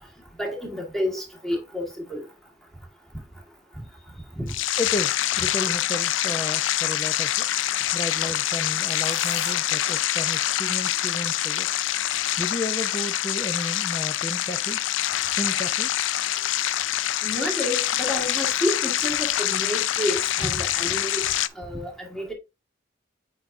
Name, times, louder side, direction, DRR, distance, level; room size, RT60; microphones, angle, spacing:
voice 1, 0.4-2.2 4.3-4.5 17.2-21.2 21.6-22.3, left 1 dB, ahead, 1.6 m, -29 dB
sound 1, 4.5-21.5, left 13 dB, 80° left, 0.4 m, -25 dB
voice 2, 4.8-7.5 7.9-11.7 12.4-14.8 15.3-15.9 16.3-16.5, left 1 dB, 20° left, 0.5 m, -33 dB
sound 2, 8.4-9.5, left 4 dB, 55° left, 2.5 m, -40 dB
7.9 x 4.9 x 2.6 m
head